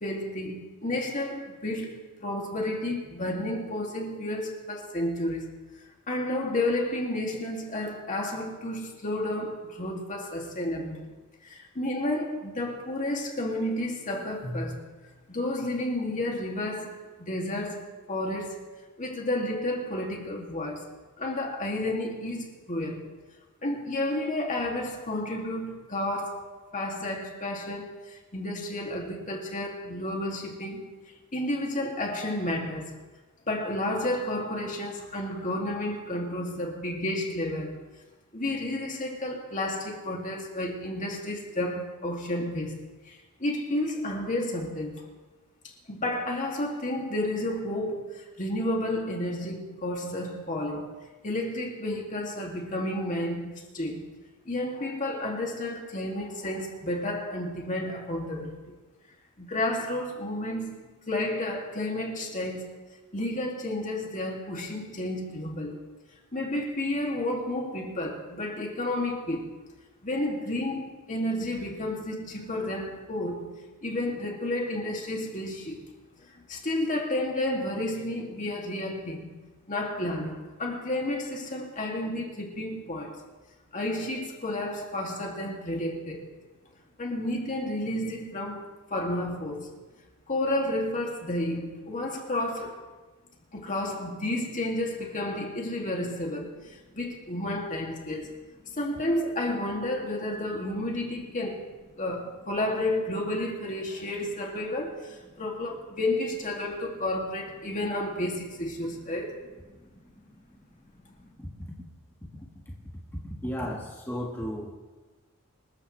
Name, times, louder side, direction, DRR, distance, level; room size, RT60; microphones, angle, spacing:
voice 1, 0.0-5.6 6.1-11.1 11.4-14.9 15.3-20.9 21.2-23.1 23.6-30.9 31.3-33.0 33.5-37.8 38.3-45.0 45.9-51.0 51.2-54.1 54.5-58.7 59.4-62.8 63.1-65.8 66.3-69.5 70.0-73.5 73.8-75.9 76.3-79.4 79.7-83.2 83.7-86.3 87.0-88.6 88.9-89.7 90.3-92.9 93.5-98.4 98.8-101.7 102.0-109.4, left 1 dB, 35° left, 2.6 m, -31 dB
voice 2, 113.4-114.7, equal, 10° left, 1.8 m, -34 dB
26.5 x 14.5 x 3.3 m
head